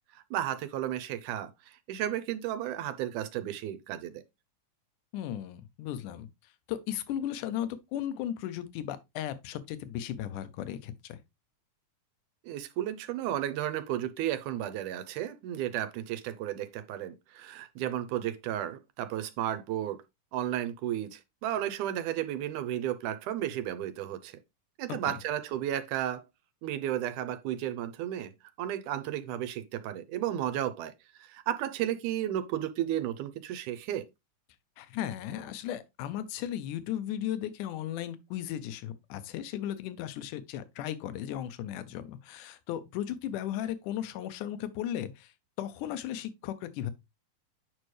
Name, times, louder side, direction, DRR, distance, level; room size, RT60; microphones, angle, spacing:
voice 1, 0.3-4.2 12.4-20.0 20.3-24.4 24.8-26.2 26.6-28.3 28.6-30.9 31.2-34.1, right 11 dB, 80° right, 2.1 m, -33 dB
voice 2, 5.1-11.2 25.1-25.2 34.8-45.3 45.6-46.9, left 11 dB, 80° left, 2.3 m, -36 dB
8.9 x 5.3 x 3.2 m
omnidirectional pair, 3.6 m